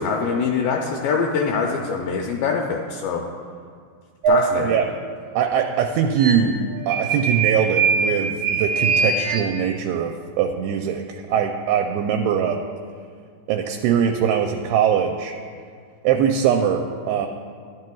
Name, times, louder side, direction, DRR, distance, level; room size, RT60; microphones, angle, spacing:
voice 1, 0.0-3.2 4.3-4.8, left 5 dB, 85° left, 1 dB, 2.0 m, -23 dB
sound 1, 4.2-4.4 6.2-6.6 6.9-9.4, right 5 dB, 70° right, 1.9 m, -21 dB
voice 2, 5.4-6.6 6.9-12.6 13.5-15.3 16.0-17.3, right 8 dB, 85° right, 4 dB, 2.5 m, -21 dB
12.5 x 10.5 x 2.3 m, 2.1 s
omnidirectional pair, 4.7 m